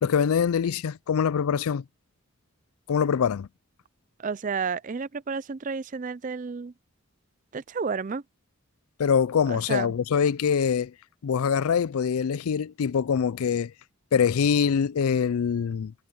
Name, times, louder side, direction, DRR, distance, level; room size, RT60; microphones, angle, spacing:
voice 1, 0.0-1.8 2.9-3.5 9.0-10.9 11.2-13.7 14.1-15.9, left 7 dB, 80° left, 0.4 m, -24 dB
voice 2, 4.2-6.7 7.5-8.2 9.5-9.9, right 5 dB, 35° right, 0.4 m, -31 dB
head